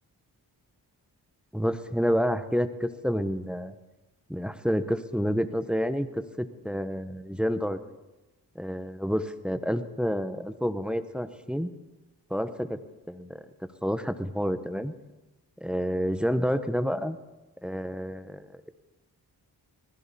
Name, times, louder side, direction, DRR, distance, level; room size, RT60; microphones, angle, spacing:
voice 1, 1.5-3.7 4.3-7.8 8.5-11.7 12.3-12.8 13.1-13.4 13.8-14.9 15.6-17.2 17.6-18.7, equal, ahead, 11 dB, 1.1 m, -29 dB
20.0 x 14.5 x 4.3 m, 1.1 s
cardioid pair, 45°, 41 cm